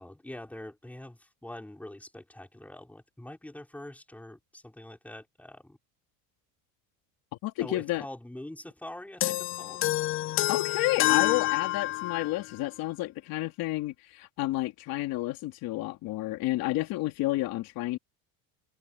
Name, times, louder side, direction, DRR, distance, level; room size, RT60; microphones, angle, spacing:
voice 1, 0.0-5.8 7.6-9.9, left 1 dB, 5° left, 4.9 m, -44 dB
voice 2, 7.4-8.0 10.5-18.0, left 18 dB, 65° left, 3.2 m, -31 dB
sound 1, 9.2-12.4, left 16 dB, 35° left, 0.4 m, -28 dB
cardioid pair, 145°, 38 cm